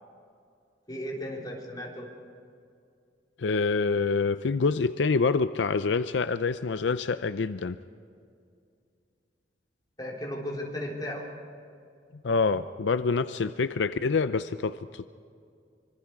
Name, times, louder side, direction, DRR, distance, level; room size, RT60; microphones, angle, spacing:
voice 1, 0.9-2.1 10.0-11.2, equal, 20° left, -2 dB, 3.9 m, -35 dB
voice 2, 3.4-7.8 12.2-15.1, left 4 dB, 80° left, 12 dB, 0.5 m, -26 dB
25.5 x 25.0 x 4.8 m, 2.4 s
head